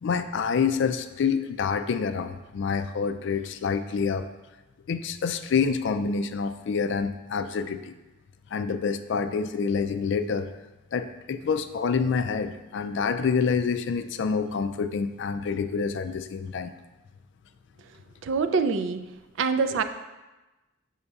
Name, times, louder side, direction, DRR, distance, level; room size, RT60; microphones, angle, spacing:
voice 1, 0.0-4.3 4.9-7.9 8.5-10.5 10.9-16.7, left 5 dB, 60° left, 10 dB, 0.3 m, -27 dB
voice 2, 18.2-19.0 19.4-19.8, right 5 dB, 65° right, 10 dB, 0.4 m, -24 dB
6.6 x 6.0 x 2.4 m, 1.1 s
head